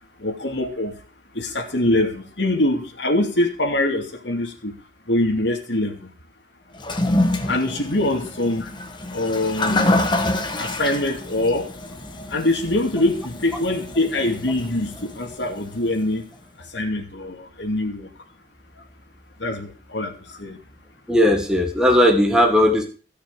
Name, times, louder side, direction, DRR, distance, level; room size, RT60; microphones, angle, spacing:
voice 1, 0.2-1.0 1.3-4.7 5.1-6.1 7.5-8.7 9.1-9.9 10.6-11.7 12.3-16.3 16.6-18.1 19.4-20.6, left 1 dB, 75° left, 3 dB, 2.6 m, -24 dB
Toilet flush, 6.7-16.0, left 1 dB, 25° left, 1.3 m, -27 dB
voice 2, 21.1-22.8, left 1 dB, 5° right, 2 dB, 1.7 m, -17 dB
16.0 x 6.6 x 4.8 m, 0.37 s
head